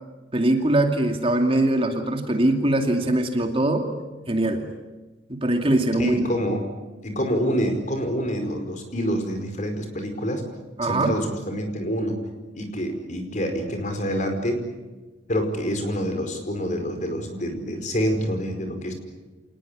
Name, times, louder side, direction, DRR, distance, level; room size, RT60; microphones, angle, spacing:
voice 1, 0.3-3.9 4.3-4.7 5.3-6.3 10.8-11.2, right 1 dB, 30° right, 5 dB, 2.6 m, -22 dB
voice 2, 6.0-6.6 7.0-10.4 10.8-12.2 12.5-14.7 15.3-18.9, equal, 45° left, 6 dB, 4.9 m, -27 dB
27.5 x 19.5 x 10.0 m, 1.2 s
head